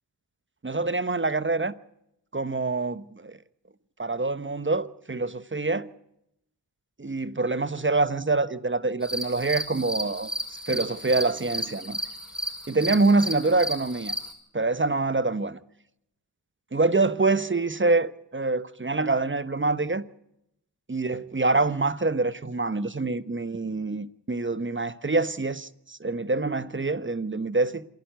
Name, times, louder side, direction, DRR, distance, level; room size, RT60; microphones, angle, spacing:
voice 1, 0.6-1.7 2.3-3.4 4.0-5.9 7.0-10.3 10.7-12.0 12.7-14.1 14.5-15.6 16.7-20.1 20.9-27.9, right 3 dB, 25° right, 1.1 m, -25 dB
sound 1, 9.0-14.3, equal, ahead, 5.9 m, -34 dB
27.0 x 11.5 x 9.4 m
cardioid pair, 55°, 43 cm